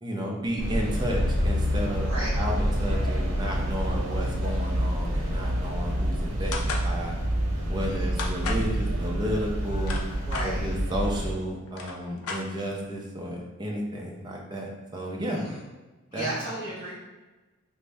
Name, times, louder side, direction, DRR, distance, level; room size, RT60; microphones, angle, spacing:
voice 1, 0.0-2.1 2.4-7.1 7.7-10.0 10.4-15.4 16.1-16.3, equal, 20° right, -2 dB, 0.5 m, -32 dB
sound 1, 0.6-11.3, equal, 65° right, 0.9 m, -27 dB
voice 2, 2.0-2.4 7.8-8.2 10.2-10.7 15.3-15.6 16.1-16.9, right 2 dB, 20° left, -14 dB, 1.2 m, -35 dB
sound 2, 6.5-6.9 8.2-8.7 9.6-10.5 11.3-11.4 11.6-12.8, left 4 dB, 75° left, 0.5 m, -34 dB
3.2 x 2.6 x 3.3 m, 1.2 s
head